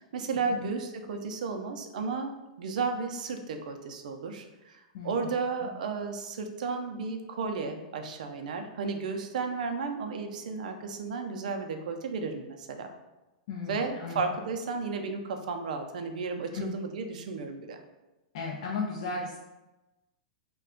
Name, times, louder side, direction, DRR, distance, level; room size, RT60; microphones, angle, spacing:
voice 1, 0.0-12.9 13.6-17.8, right 4 dB, 70° right, 5 dB, 0.4 m, -33 dB
voice 2, 4.9-5.3 5.6-5.7 13.5-14.2 16.5-16.7 18.3-19.4, left 4 dB, 60° left, -2 dB, 0.4 m, -35 dB
2.3 x 2.2 x 3.7 m, 1.0 s
hypercardioid pair, 120°, 4 cm